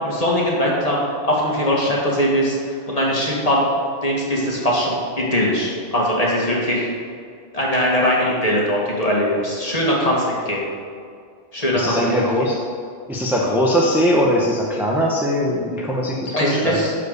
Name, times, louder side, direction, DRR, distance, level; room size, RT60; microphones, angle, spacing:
voice 1, 0.0-1.0 1.2-2.6 2.9-3.6 4.0-6.9 7.5-10.7 11.5-12.1 16.3-17.0, equal, 30° left, -4 dB, 2.2 m, -20 dB
voice 2, 11.7-12.7 13.1-16.8, equal, ahead, -2 dB, 0.8 m, -20 dB
11.5 x 4.9 x 6.7 m, 2.2 s
omnidirectional pair, 1.2 m